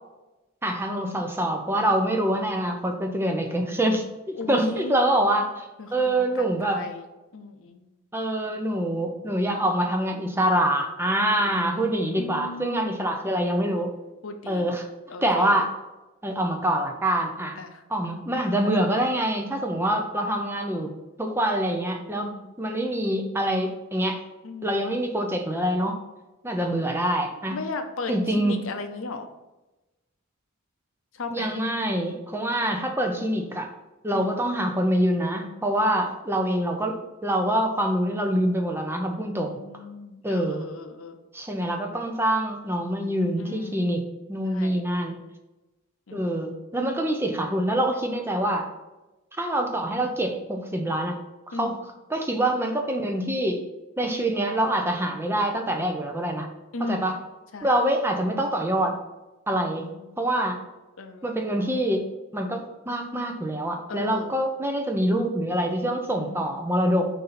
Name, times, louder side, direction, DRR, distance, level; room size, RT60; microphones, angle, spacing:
voice 1, 0.6-6.8 8.1-13.9 14.5-14.9 15.2-15.7 16.2-17.6 17.9-20.9 21.2-22.3 22.6-24.2 24.6-26.0 26.4-27.6 28.1-28.6 31.3-33.7 34.0-37.0 37.2-39.6 40.2-40.6 41.3-44.0 44.3-45.2 46.1-48.7 49.4-51.2 51.5-51.8 52.1-53.6 54.0-56.5 56.8-57.2 57.6-58.9 59.5-59.9 60.2-60.6 61.2-62.1 62.3-67.1, right 1 dB, 10° right, 3 dB, 0.6 m, -25 dB
voice 2, 4.4-5.0 5.8-7.0 7.3-7.9 11.3-13.2 14.2-14.7 15.1-15.6 17.6-17.8 22.1-22.6 24.4-24.8 27.5-29.3 31.1-31.5 34.1-34.2 39.2-41.2 43.4-43.9 44.5-44.8 46.1-46.4 51.5-51.8 56.7-57.1 57.5-57.7 59.9-60.2 61.0-61.3 63.9-64.4 66.1-66.6, left 3 dB, 65° left, 6 dB, 0.6 m, -37 dB
6.7 x 2.7 x 5.7 m, 1.0 s
head